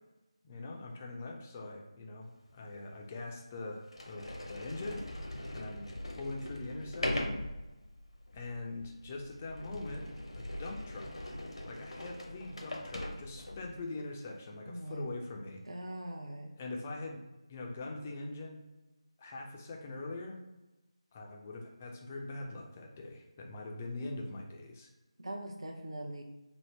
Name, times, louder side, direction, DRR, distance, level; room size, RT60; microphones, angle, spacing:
voice 1, 0.4-5.0 5.5-5.9 6.2-7.4 8.3-10.1 10.3-11.3 11.6-15.6 16.6-17.2 17.5-18.6 19.2-20.4 21.1-24.9, left 2 dB, 20° left, 1 dB, 0.4 m, -42 dB
Sliding door, 2.5-2.6 3.3-3.4 3.9-13.8, left 1 dB, 70° left, 0.7 m, -41 dB
voice 2, 14.6-15.1 15.6-16.5 25.2-26.2, right 1 dB, 60° right, 1 dB, 0.7 m, -41 dB
3.4 x 2.0 x 4.3 m, 1.1 s
figure-of-eight pair, 160°, 3 cm